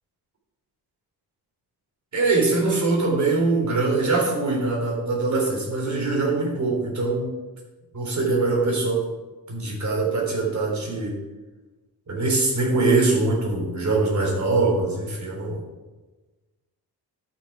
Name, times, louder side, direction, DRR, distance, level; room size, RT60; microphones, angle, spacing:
voice 1, 2.1-7.3 7.9-9.0 9.5-11.1 12.1-15.6, right 3 dB, 45° right, -1 dB, 3.6 m, -23 dB
12.0 x 6.1 x 4.9 m, 1.2 s
cardioid pair, 105°, 40 cm